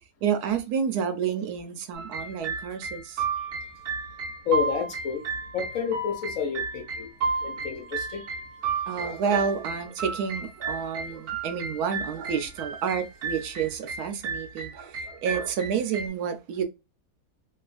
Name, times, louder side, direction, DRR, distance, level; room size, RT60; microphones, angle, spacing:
voice 1, 0.2-3.2 8.9-16.6, right 7 dB, 80° right, 1.1 m, -29 dB
sound 1, 1.9-16.1, right 4 dB, 55° right, 1.2 m, -33 dB
voice 2, 4.5-5.2 5.5-7.1 7.4-8.2, left 7 dB, 60° left, 1.2 m, -29 dB
3.1 x 2.4 x 2.4 m
omnidirectional pair, 1.6 m